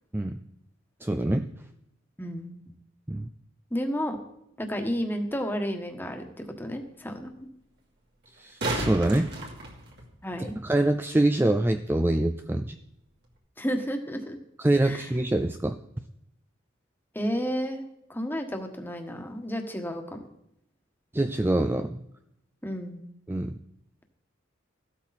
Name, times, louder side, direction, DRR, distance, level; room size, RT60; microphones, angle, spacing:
voice 1, 1.0-1.5 3.1-3.3 8.4-9.3 10.4-12.8 14.6-15.8 21.1-22.0 23.3-23.5, right 1 dB, 10° right, 8 dB, 0.4 m, -25 dB
voice 2, 2.2-2.5 3.7-4.2 4.6-6.3 6.6-7.5 10.2-10.5 13.6-14.4 14.8-15.1 17.1-17.8 18.1-20.3 22.6-23.0, equal, 10° left, 4 dB, 1.4 m, -31 dB
sound 1, 5.4-5.5 8.2-10.4 13.2-13.3, right 2 dB, 55° right, 2.7 m, -33 dB
15.0 x 12.5 x 4.2 m, 0.78 s
head